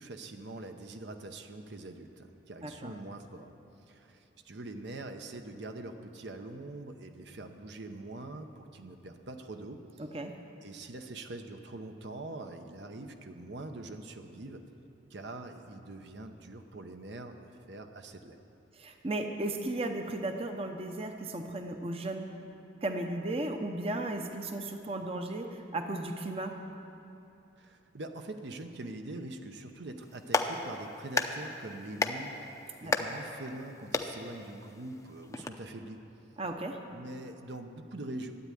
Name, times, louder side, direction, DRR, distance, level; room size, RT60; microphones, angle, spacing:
voice 1, 0.0-3.5 3.9-10.0 10.6-14.6 15.1-18.4 27.6-32.4 32.8-36.0 36.9-38.3, right 2 dB, 65° right, 6 dB, 0.8 m, -43 dB
voice 2, 2.6-2.9 10.0-10.3 18.8-22.3 22.8-26.6 32.8-32.9 36.4-36.8, right 2 dB, 30° right, 5 dB, 0.8 m, -35 dB
Clapping, 30.0-35.5, left 2 dB, 15° left, 0.6 m, -35 dB
13.0 x 8.5 x 9.8 m, 2.8 s
head